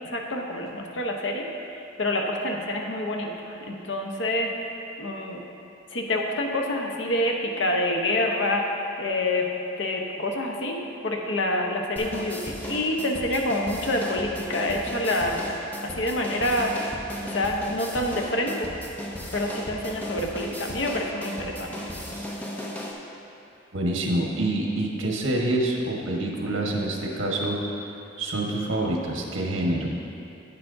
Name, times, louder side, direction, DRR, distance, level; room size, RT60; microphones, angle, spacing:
voice 1, 0.1-4.5 5.0-5.4 5.9-8.7 9.0-9.5 9.8-10.8 11.0-16.8 17.2-18.7 19.3-21.9, left 1 dB, 65° left, 1 dB, 0.9 m, -27 dB
sound 1, 12.0-22.9, equal, 10° left, 0.7 m, -36 dB
voice 2, 23.7-27.6 28.2-29.9, right 1 dB, 80° right, -1 dB, 1.3 m, -26 dB
10.5 x 9.1 x 2.6 m, 2.9 s
head